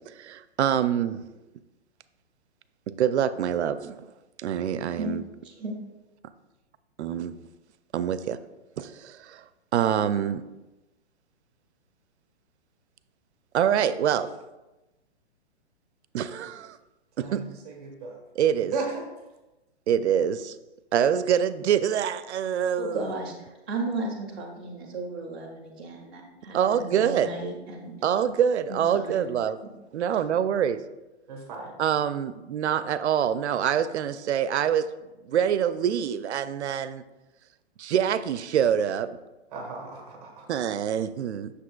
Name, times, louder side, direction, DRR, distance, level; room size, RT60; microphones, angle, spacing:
voice 1, 0.1-1.4 2.9-4.0 4.4-5.2 7.0-7.4 7.9-8.4 8.8-9.4 9.7-10.4 13.5-14.3 16.1-16.8 17.2-17.4 18.4-18.7 19.9-20.6 20.9-23.1 26.5-27.3 28.0-29.6 29.9-30.8 31.8-34.8 35.2-37.0 37.8-39.1 40.5-41.5, right 9 dB, 90° right, 13 dB, 0.5 m, -25 dB
voice 2, 5.4-5.8 22.8-27.9 28.7-29.3, right 2 dB, 10° right, -7 dB, 0.3 m, -35 dB
voice 3, 17.2-18.2 18.7-19.0 31.3-31.8 39.5-40.5, right 4 dB, 35° right, 2 dB, 1.2 m, -35 dB
7.5 x 6.6 x 2.3 m, 1.0 s
hypercardioid pair, 160°, 33 cm